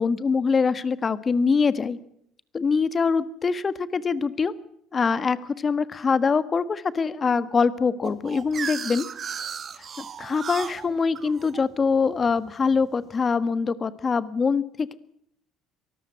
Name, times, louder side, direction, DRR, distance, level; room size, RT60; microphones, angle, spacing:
voice 1, 0.0-2.0 2.5-4.5 4.9-9.1 10.0-14.9, left 5 dB, 35° left, 14 dB, 1.5 m, -24 dB
sound 1, 8.0-12.8, right 7 dB, 45° right, 1.8 m, -36 dB
23.5 x 14.0 x 9.4 m, 0.71 s
hypercardioid pair, 60°, 0 cm